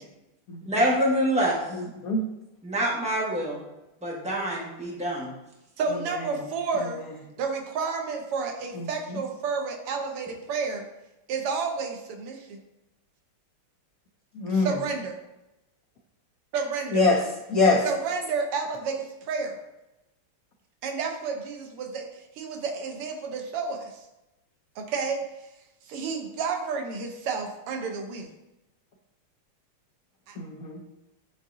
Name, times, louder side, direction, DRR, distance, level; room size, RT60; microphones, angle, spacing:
voice 1, 0.7-1.6 2.6-3.6 4.0-5.3, right 1 dB, 5° right, -4 dB, 0.7 m, -26 dB
voice 2, 1.7-2.2 8.8-8.9 14.3-14.7 16.9-17.2 17.5-17.8 30.4-30.8, left 3 dB, 90° left, 0 dB, 0.7 m, -23 dB
voice 3, 5.8-7.0 7.4-10.9 11.3-12.6 14.5-15.2 16.5-17.1 17.8-19.6 20.8-22.1 22.4-23.9 24.8-25.2 25.8-28.3 30.3-30.4, right 5 dB, 90° right, 4 dB, 1.8 m, -30 dB
9.7 x 3.6 x 2.6 m, 0.95 s
omnidirectional pair, 2.4 m